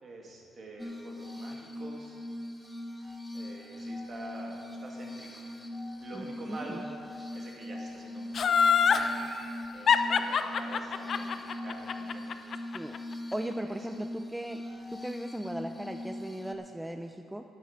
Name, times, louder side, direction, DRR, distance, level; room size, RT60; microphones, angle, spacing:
voice 1, 0.0-2.2 3.3-5.4 6.0-6.8 7.3-9.1 9.7-12.3 13.6-13.8 16.5-16.6, right 2 dB, 45° right, -1 dB, 2.5 m, -46 dB
Glass, 0.8-16.6, left 1 dB, 15° left, 1.0 m, -41 dB
voice 2, 6.1-6.9 12.7-13.0 13.3-14.7 14.9-17.4, right 1 dB, 5° right, 6 dB, 0.5 m, -38 dB
Laughter, 8.3-9.1 9.9-13.0 13.3-13.4, left 6 dB, 55° left, 0.6 m, -24 dB
10.5 x 8.4 x 7.3 m, 2.5 s
cardioid pair, 90°, 0 cm